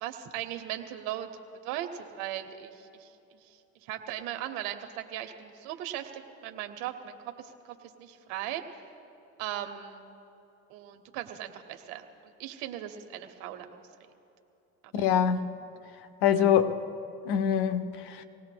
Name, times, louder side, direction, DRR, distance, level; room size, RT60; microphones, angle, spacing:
voice 1, 0.0-1.3 1.6-3.1 3.4-8.8 9.4-10.1 10.7-13.9 14.8-15.1, right 12 dB, 70° right, 1.2 m, -38 dB
voice 2, 14.9-15.4 16.2-16.7 17.3-18.2, left 8 dB, 60° left, 1.0 m, -24 dB
26.0 x 18.5 x 2.3 m
hypercardioid pair, 65°, 43 cm